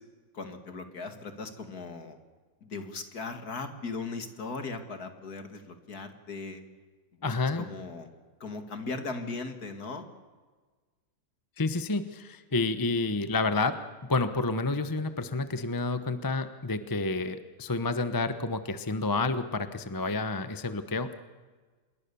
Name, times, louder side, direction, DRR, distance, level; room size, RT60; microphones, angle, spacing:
voice 1, 0.3-2.2 2.6-6.6 7.2-8.1 8.4-10.1, left 3 dB, 50° left, 7 dB, 2.6 m, -38 dB
voice 2, 7.2-7.6 11.6-13.8 14.1-21.2, left 3 dB, 15° left, 11 dB, 0.7 m, -29 dB
27.0 x 22.0 x 7.0 m, 1.4 s
omnidirectional pair, 2.1 m